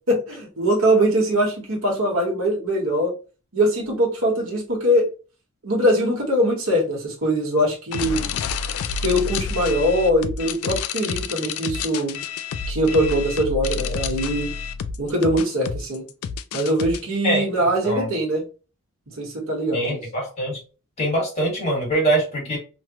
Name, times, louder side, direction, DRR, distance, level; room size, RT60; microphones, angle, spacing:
voice 1, 0.1-3.1 3.5-5.1 5.6-8.3 9.0-12.2 12.7-14.5 15.0-16.0 16.5-18.4 19.2-20.0, equal, 65° right, -1 dB, 1.3 m, -22 dB
sound 1, 7.9-17.0, left 5 dB, 85° left, 0.3 m, -29 dB
voice 2, 19.7-20.6 21.0-22.6, right 1 dB, 30° left, -1 dB, 1.6 m, -23 dB
3.2 x 2.2 x 2.8 m, 0.34 s
head